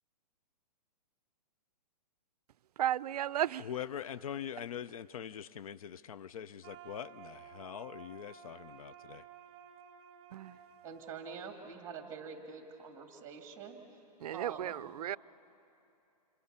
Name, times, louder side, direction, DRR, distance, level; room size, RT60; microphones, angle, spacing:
voice 1, 2.8-3.7 10.3-10.6 14.2-15.2, right 11 dB, 65° right, 0.4 m, -34 dB
voice 2, 3.6-9.2, left 9 dB, 55° left, 0.5 m, -43 dB
sound 1, 6.6-12.5, right 9 dB, 30° right, 1.6 m, -55 dB
voice 3, 10.8-14.0 14.3-14.7, right 6 dB, 15° right, 2.2 m, -46 dB
27.5 x 26.0 x 5.6 m
hypercardioid pair, 160°, 21 cm